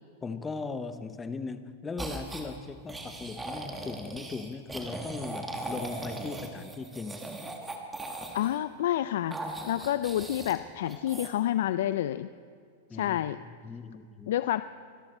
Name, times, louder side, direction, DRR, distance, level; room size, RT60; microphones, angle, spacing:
voice 1, 0.2-7.4 12.9-13.2 13.4-14.3, left 4 dB, 15° left, 11 dB, 0.8 m, -38 dB
sound 1, 2.0-2.5 2.9-8.6 9.3-10.6 10.9-11.3, right 2 dB, 10° right, 1.6 m, -39 dB
voice 2, 8.3-12.3 12.9-13.4 14.3-14.6, left 12 dB, 70° left, 13 dB, 0.4 m, -29 dB
24.5 x 13.0 x 4.4 m, 2.2 s
supercardioid pair, 145°, 0 cm